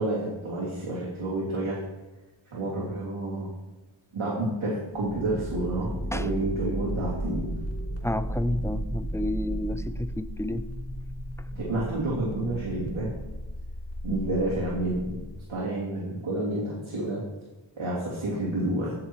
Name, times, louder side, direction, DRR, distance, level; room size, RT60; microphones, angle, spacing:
voice 1, 0.0-1.8 2.5-3.5 4.1-7.5 11.5-13.1 14.0-15.2 15.5-17.2 17.8-18.9, right 1 dB, 85° right, -6 dB, 3.2 m, -29 dB
sound 1, 4.9-15.6, right 1 dB, 30° left, 3.2 m, -34 dB
voice 2, 8.0-10.7, left 1 dB, 5° left, 13 dB, 0.5 m, -30 dB
17.0 x 6.6 x 4.8 m, 1.1 s
wide cardioid pair, 95°, 47 cm